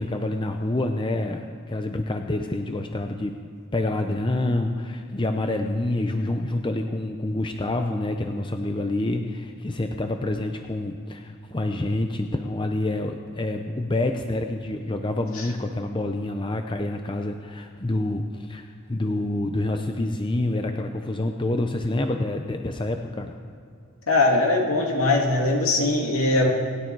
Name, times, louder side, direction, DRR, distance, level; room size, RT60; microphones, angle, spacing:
voice 1, 0.0-3.4 3.7-23.3, left 2 dB, 20° left, 5 dB, 0.6 m, -27 dB
voice 2, 24.1-26.5, left 2 dB, 70° left, 0 dB, 2.5 m, -21 dB
27.5 x 9.8 x 4.7 m, 2.4 s
head